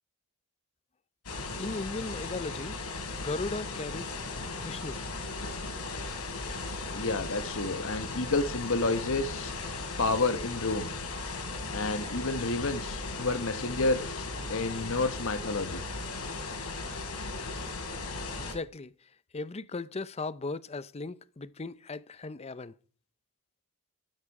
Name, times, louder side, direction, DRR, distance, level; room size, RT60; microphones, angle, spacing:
sound 1, 1.2-18.5, left 3 dB, 85° left, 3.4 m, -37 dB
voice 1, 1.6-2.7 3.2-4.2 4.6-5.0 18.4-18.9 19.3-22.7, left 3 dB, 30° left, 0.6 m, -37 dB
voice 2, 6.9-9.5 10.0-10.9 11.7-14.2 14.5-15.8, left 3 dB, 65° left, 1.3 m, -30 dB
12.0 x 12.0 x 4.8 m
head